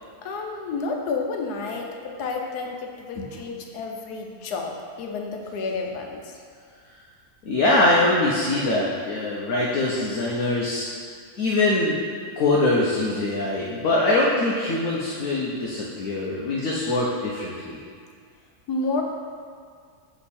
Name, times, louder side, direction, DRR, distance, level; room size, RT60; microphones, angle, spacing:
voice 1, 0.2-4.7 5.0-6.4 18.7-19.0, left 3 dB, 85° left, 2 dB, 1.3 m, -30 dB
voice 2, 7.4-10.9 11.4-12.0 12.4-17.8, left 2 dB, 65° left, -4 dB, 1.2 m, -23 dB
7.0 x 5.1 x 4.2 m, 2.1 s
omnidirectional pair, 1.6 m